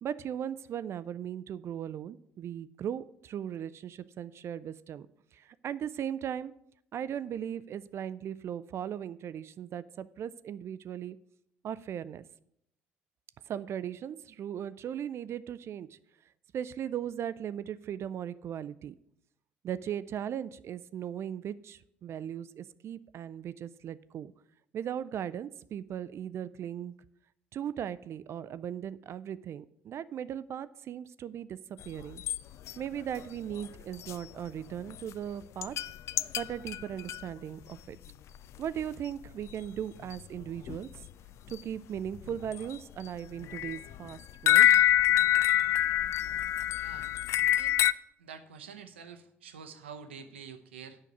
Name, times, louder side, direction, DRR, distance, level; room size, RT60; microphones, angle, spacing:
voice 1, 0.0-5.1 5.3-6.5 6.9-11.2 11.6-12.2 13.5-16.0 16.5-18.9 19.6-24.3 24.7-26.9 27.5-32.2 32.8-35.7 36.4-38.0 38.6-41.0 41.5-44.7, right 9 dB, 45° right, 16 dB, 0.4 m, -38 dB
sound 1, 31.8-32.4 32.7-32.8 33.2-33.3 33.5-34.1 34.6-34.7 34.9-35.1 35.6-37.2 38.0-38.1 38.3-38.6 38.8-38.9 39.2-39.5 39.8-39.9 40.1-41.1 41.5-41.6 42.0-42.8 43.2-47.9, left 12 dB, 50° left, 0.3 m, -26 dB
voice 2, 46.8-47.1 47.4-47.8 48.2-51.0, right 6 dB, 80° right, 8 dB, 0.7 m, -47 dB
8.4 x 5.8 x 8.0 m, 0.74 s
figure-of-eight pair, 50°, 6 cm